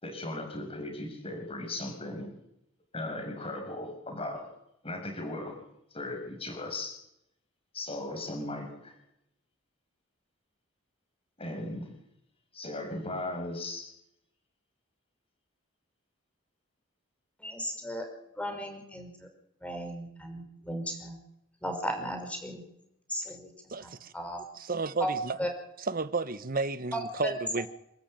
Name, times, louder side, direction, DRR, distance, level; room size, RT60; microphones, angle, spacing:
voice 1, 0.0-2.3 2.9-4.5 4.8-5.6 5.9-6.9 7.7-8.7 11.4-11.9 12.5-13.9, left 2 dB, 30° left, 6.4 m, -37 dB
voice 2, 17.4-18.1 18.4-19.3 19.6-21.2 21.6-22.6 23.1-24.4 25.0-25.1 25.4-25.5 26.9-27.3, equal, 5° left, 5.5 m, -36 dB
voice 3, 23.7-24.1 24.5-25.4 25.8-27.7, right 3 dB, 45° right, 1.1 m, -32 dB
28.5 x 13.5 x 8.9 m
head